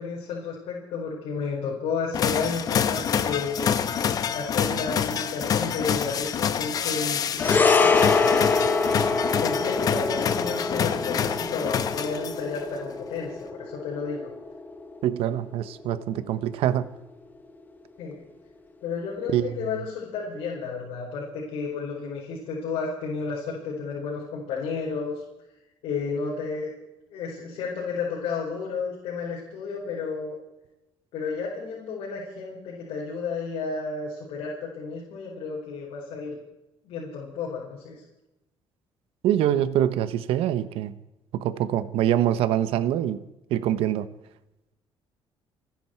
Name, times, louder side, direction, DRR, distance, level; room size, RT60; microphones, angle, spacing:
voice 1, 0.0-3.5 4.3-8.4 9.4-14.3 18.0-18.2 18.8-25.1 25.8-26.7 27.1-30.4 31.1-36.4 36.8-38.0, left 5 dB, 85° left, -4 dB, 4.8 m, -32 dB
sound 1, 2.1-12.6, left 8 dB, 40° left, 0.9 m, -27 dB
sound 2, 7.4-15.9 16.1-16.3, left 4 dB, 20° left, 1.2 m, -25 dB
voice 2, 15.0-16.9 19.3-19.5 39.2-40.9 41.3-43.2 43.5-44.1, right 11 dB, 80° right, 13 dB, 1.0 m, -24 dB
28.0 x 10.5 x 4.6 m, 0.95 s
cardioid pair, 170°, 10 cm